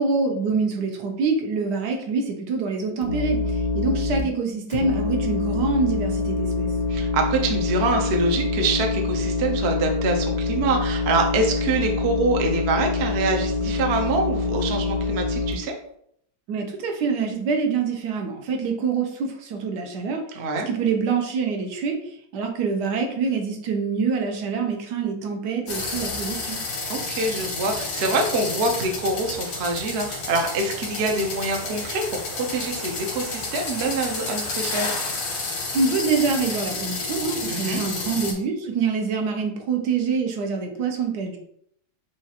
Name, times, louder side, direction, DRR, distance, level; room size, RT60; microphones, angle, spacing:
voice 1, 0.0-6.7 16.5-20.2 20.7-22.0 22.3-26.6 35.7-41.4, right 5 dB, 75° right, 3 dB, 1.3 m, -25 dB
sound 1, 3.0-4.2 4.7-15.5, left 3 dB, 60° left, 0.7 m, -25 dB
voice 2, 6.9-15.7 20.3-20.7 26.9-34.9 37.5-37.8, right 3 dB, 60° right, 2 dB, 0.7 m, -25 dB
sound 2, 25.7-38.3, left 3 dB, 85° left, 1.7 m, -31 dB
5.9 x 2.4 x 2.8 m, 0.70 s
omnidirectional pair, 1.8 m